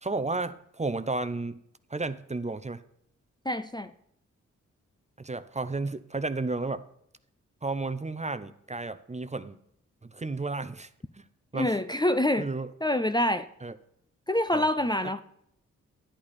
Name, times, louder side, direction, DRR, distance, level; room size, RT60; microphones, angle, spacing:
voice 1, 0.0-1.6 1.9-2.8 5.2-6.8 7.6-9.6 10.0-10.9 11.5-11.7 12.4-12.7 13.6-13.7 14.5-14.7 15.0-15.1, right 3 dB, 20° right, 12 dB, 0.7 m, -32 dB
voice 2, 3.4-3.9 11.5-12.5 12.8-13.5 14.3-15.2, left 1 dB, 15° left, 10 dB, 0.6 m, -26 dB
10.0 x 8.6 x 4.3 m, 0.72 s
supercardioid pair, 40°, 32 cm